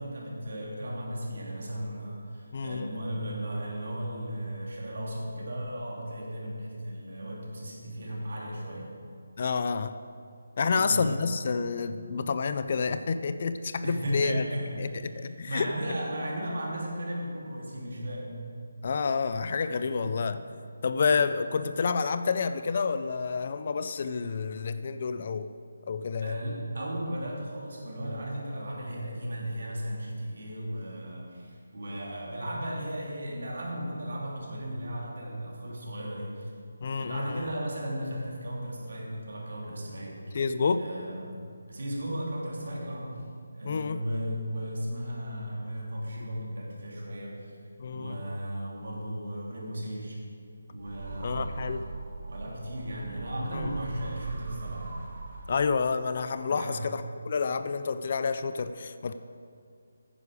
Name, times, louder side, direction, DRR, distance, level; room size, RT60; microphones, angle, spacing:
voice 1, 0.0-9.0 10.6-11.2 13.8-18.4 20.0-20.3 26.2-36.5 36.9-40.2 40.8-41.4 41.7-43.2 43.5-47.5 47.9-50.2 50.7-51.9 52.2-55.0 56.5-56.9, equal, 60° right, -3 dB, 3.0 m, -35 dB
voice 2, 2.5-2.9 9.4-10.0 10.6-14.4 14.8-15.7 18.8-20.4 20.8-25.5 25.9-26.4 36.8-37.5 40.3-40.9 43.6-44.0 47.8-48.2 51.2-51.8 53.5-53.8 55.5-59.1, left 5 dB, 35° left, 11 dB, 0.4 m, -29 dB
sound 1, 50.8-56.1, right 3 dB, 35° right, 1.4 m, -40 dB
9.9 x 9.7 x 4.9 m, 2.4 s
figure-of-eight pair, 175°, 0 cm